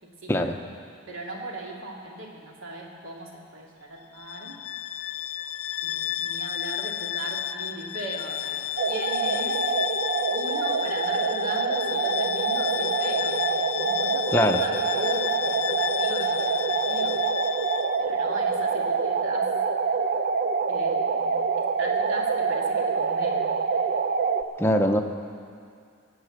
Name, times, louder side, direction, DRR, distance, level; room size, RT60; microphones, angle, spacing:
voice 1, 0.2-0.6 1.1-4.6 5.8-8.6 8.9-9.6 10.3-17.2 18.0-19.5 20.7-23.6, right 1 dB, 65° right, -1 dB, 2.3 m, -38 dB
Bowed string instrument, 4.2-18.0, left 11 dB, 75° left, 0.5 m, -32 dB
sound 1, 8.8-24.4, right 5 dB, 45° right, 0.5 m, -26 dB
voice 2, 24.6-25.0, left 1 dB, 10° left, 5 dB, 0.7 m, -22 dB
18.0 x 7.9 x 7.7 m, 2.3 s
head